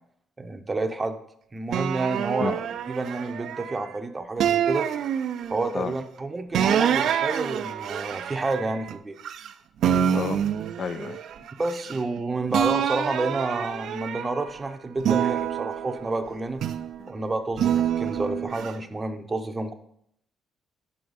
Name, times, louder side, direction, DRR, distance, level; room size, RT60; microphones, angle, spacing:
voice 1, 0.4-1.2 1.5-4.9 5.5-9.2 11.6-16.6 17.1-19.7, right 2 dB, 25° right, 0.6 m, -29 dB
sound 1, 1.7-3.9 4.4-5.8 6.5-9.5 9.8-12.2 12.5-14.5 15.0-17.0 17.6-18.7, right 9 dB, 75° right, 0.3 m, -27 dB
voice 2, 10.8-11.2 17.0-17.1, left 6 dB, 50° left, 0.3 m, -30 dB
5.6 x 4.7 x 4.0 m
cardioid pair, 90°, 0 cm